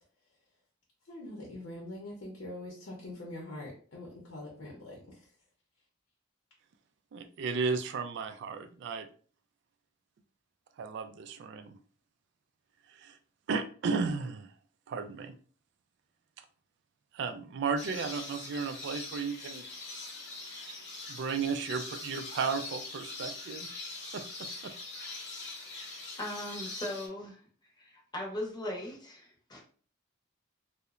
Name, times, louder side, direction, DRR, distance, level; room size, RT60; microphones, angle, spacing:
voice 1, 1.1-5.3, left 1 dB, 85° left, -2 dB, 0.7 m, -44 dB
voice 2, 7.1-9.1 10.8-11.8 12.9-13.2 13.5-14.5 14.9-15.4 17.1-19.6 21.1-23.7 24.1-24.2 24.6-24.7, right 5 dB, 60° right, 10 dB, 0.3 m, -34 dB
sound 1, 17.8-27.1, left 2 dB, 60° left, 0.8 m, -42 dB
voice 3, 26.2-27.4 27.8-29.6, left 1 dB, 20° left, -2 dB, 0.7 m, -39 dB
2.9 x 2.0 x 2.4 m, 0.43 s
head